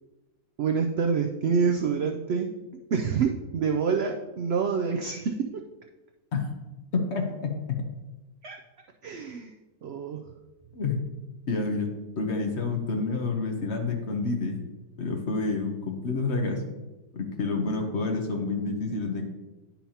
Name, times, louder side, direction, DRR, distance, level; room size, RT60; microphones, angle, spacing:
voice 1, 0.6-2.5 2.9-5.5 8.4-8.6 9.0-9.5 9.8-10.2, right 5 dB, 70° right, 5 dB, 0.6 m, -27 dB
voice 2, 6.9-7.5 10.7-11.0 11.5-11.9 12.2-14.6 15.0-16.6 17.1-19.3, left 3 dB, 50° left, 3 dB, 1.1 m, -28 dB
10.5 x 5.7 x 2.8 m, 1.1 s
omnidirectional pair, 1.6 m